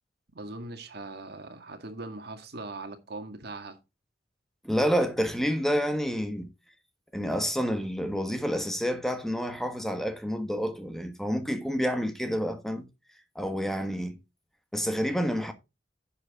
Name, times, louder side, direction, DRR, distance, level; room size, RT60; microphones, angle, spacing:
voice 1, 0.4-3.8, right 2 dB, 60° right, 1.9 m, -40 dB
voice 2, 4.6-6.5 7.1-12.8 13.3-14.2 14.7-15.5, equal, ahead, 1.3 m, -29 dB
10.5 x 7.2 x 3.6 m
head